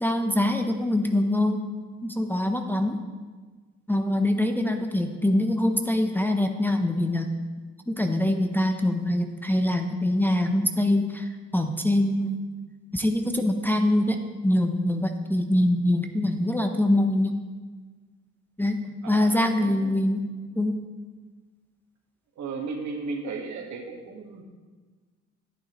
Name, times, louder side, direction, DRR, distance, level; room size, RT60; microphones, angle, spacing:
voice 1, 0.0-1.6 2.0-3.0 3.9-7.3 7.9-12.4 12.9-14.2 14.4-17.4 18.6-18.8 19.1-20.2 20.6-20.8, left 1 dB, 5° left, 4 dB, 0.6 m, -24 dB
voice 2, 19.0-20.0 22.4-24.4, right 4 dB, 70° right, 2 dB, 1.4 m, -35 dB
10.5 x 9.2 x 3.0 m, 1.4 s
cardioid pair, 90°, 30 cm